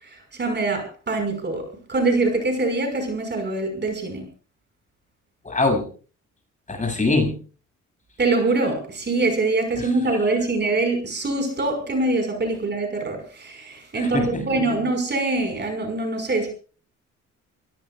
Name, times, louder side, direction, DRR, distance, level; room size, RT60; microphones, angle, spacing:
voice 1, 0.0-4.3 8.2-16.5, right 2 dB, 35° right, 5 dB, 5.5 m, -24 dB
voice 2, 5.4-5.9 6.7-7.4 9.8-9.9 13.9-14.6, left 3 dB, 25° left, 3 dB, 7.6 m, -23 dB
28.5 x 17.5 x 2.5 m, 0.39 s
cardioid pair, 90°, 30 cm